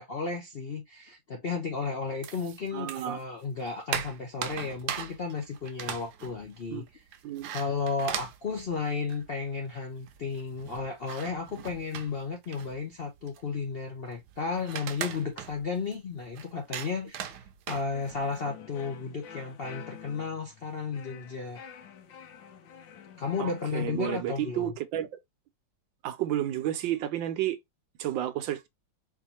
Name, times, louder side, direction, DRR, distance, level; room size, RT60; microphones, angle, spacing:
voice 1, 0.0-7.0 7.5-21.6 23.2-24.7, left 5 dB, 65° left, 0.5 m, -33 dB
sound 1, 2.2-3.2 3.5-9.5 9.7-9.8 10.0-18.4, right 9 dB, 70° right, 1.1 m, -40 dB
voice 2, 2.7-3.2 6.7-6.8 7.2-7.5 23.4-25.1 26.0-27.6 28.0-28.7, right 12 dB, 90° right, 1.4 m, -31 dB
sound 2, 17.9-23.8, left 7 dB, 90° left, 1.5 m, -49 dB
4.5 x 2.6 x 2.8 m
omnidirectional pair, 2.0 m